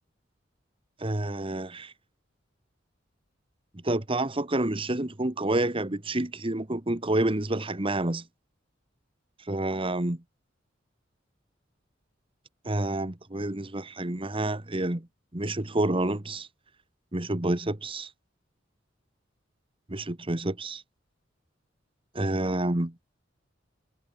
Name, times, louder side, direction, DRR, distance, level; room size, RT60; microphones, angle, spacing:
voice 1, 1.0-1.9 3.8-8.2 9.5-10.2 12.6-15.1 15.3-16.5 17.1-18.1 19.9-20.8 22.1-22.9, right 1 dB, 30° right, 1.5 m, -28 dB
head